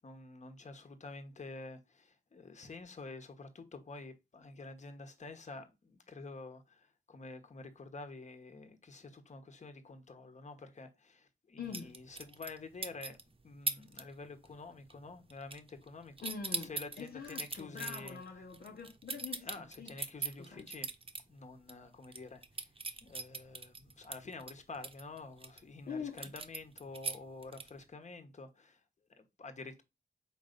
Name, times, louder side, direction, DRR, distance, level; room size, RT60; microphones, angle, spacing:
voice 1, 0.0-13.2 13.4-18.2 19.4-20.9 21.3-22.7 23.0-28.8 29.2-29.8, left 3 dB, 45° left, 1.3 m, -49 dB
voice 2, 11.6-12.0 16.2-19.5 19.8-19.9 20.5-20.7 25.9-26.3, left 6 dB, 65° left, 1.1 m, -44 dB
sound 1, 11.7-12.6 12.8-13.2 13.7-14.0 14.3-14.6 14.9-15.9 16.2-21.2 21.6-21.7 22.0-25.6 26.2-27.9, right 4 dB, 35° right, 1.1 m, -40 dB
5.1 x 4.0 x 5.2 m
cardioid pair, 65°, 17 cm